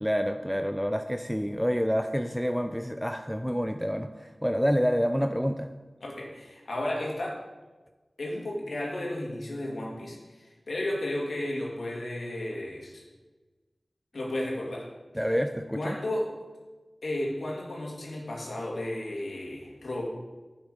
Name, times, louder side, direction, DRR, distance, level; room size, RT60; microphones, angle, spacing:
voice 1, 0.0-5.7 15.1-16.0, equal, ahead, 7 dB, 0.5 m, -28 dB
voice 2, 6.0-7.4 8.2-13.0 14.1-14.9 15.3-15.4 15.7-16.3 17.0-20.1, left 1 dB, 85° left, -2 dB, 2.2 m, -33 dB
8.1 x 7.8 x 5.0 m, 1.3 s
wide cardioid pair, 45°, 0 cm